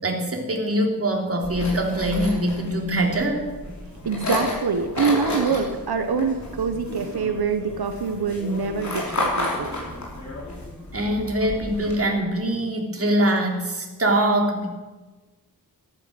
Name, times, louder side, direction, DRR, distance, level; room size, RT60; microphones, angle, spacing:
voice 1, 0.0-3.4 10.9-14.7, right 1 dB, 40° right, 1 dB, 3.3 m, -23 dB
sound 1, 1.4-12.0, left 2 dB, 45° left, 5.9 m, -32 dB
voice 2, 4.0-9.7, right 5 dB, 90° right, 6 dB, 1.3 m, -25 dB
14.0 x 13.0 x 7.9 m, 1.2 s
wide cardioid pair, 125°, 37 cm